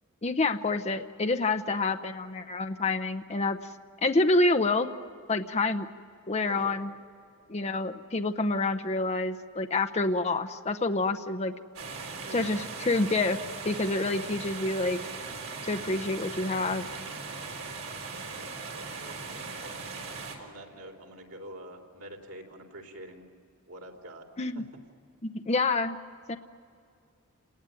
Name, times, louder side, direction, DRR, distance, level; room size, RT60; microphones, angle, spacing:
voice 1, 0.2-3.6 4.0-4.9 5.3-5.9 6.3-6.9 7.5-11.5 12.3-13.4 13.6-15.0 15.6-16.9 24.4-24.6 25.2-26.0 26.3-26.4, left 2 dB, 30° left, 7 dB, 0.7 m, -27 dB
voice 2, 1.6-1.9 6.4-6.8 12.2-12.7 18.4-19.8 20.3-23.3 23.7-24.3 24.5-24.6, right 1 dB, 85° right, 1 dB, 3.7 m, -46 dB
sound 1, 11.8-20.4, right 4 dB, 65° right, 4.0 m, -39 dB
30.0 x 19.5 x 9.1 m, 2.4 s
head